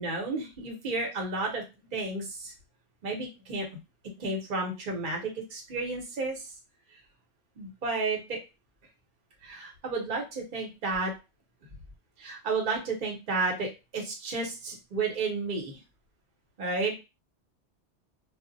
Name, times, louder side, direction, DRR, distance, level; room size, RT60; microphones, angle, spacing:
voice 1, 0.0-2.5 3.0-3.7 4.2-6.5 7.6-8.4 9.4-11.1 12.2-13.7 13.9-15.8 16.6-16.9, right 3 dB, 50° right, 0 dB, 0.9 m, -32 dB
2.1 x 2.1 x 3.8 m, 0.27 s
omnidirectional pair, 1.2 m